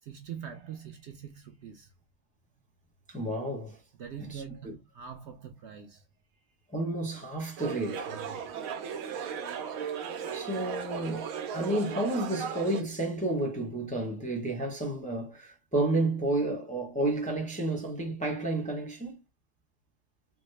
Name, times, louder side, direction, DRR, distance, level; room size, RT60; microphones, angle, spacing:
voice 1, 0.0-1.9 4.0-6.0 8.1-8.4, right 8 dB, 65° right, 0.7 m, -43 dB
voice 2, 3.1-3.8 4.2-4.7 6.7-8.1 10.3-19.2, right 2 dB, 10° left, 0.5 m, -31 dB
sound 1, 7.6-12.8, right 7 dB, 90° right, 1.1 m, -36 dB
3.4 x 2.1 x 3.2 m
omnidirectional pair, 1.4 m